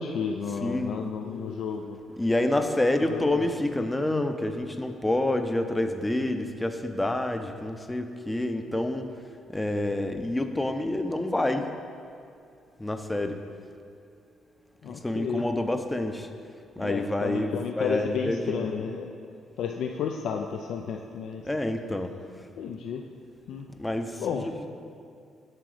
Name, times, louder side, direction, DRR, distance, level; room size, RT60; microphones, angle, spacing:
voice 1, 0.0-2.0 3.0-3.4 14.8-15.4 16.8-19.1 19.6-21.4 22.6-23.0 23.5-23.7 24.2-24.5, left 6 dB, 75° left, 3 dB, 0.4 m, -32 dB
voice 2, 0.6-1.0 2.2-9.1 9.5-11.7 12.8-13.4 14.9-16.3 16.8-18.7 21.4-22.1 23.8-24.7, left 1 dB, 10° left, 7 dB, 0.5 m, -28 dB
7.6 x 6.0 x 4.9 m, 2.4 s
cardioid pair, 90°, 0 cm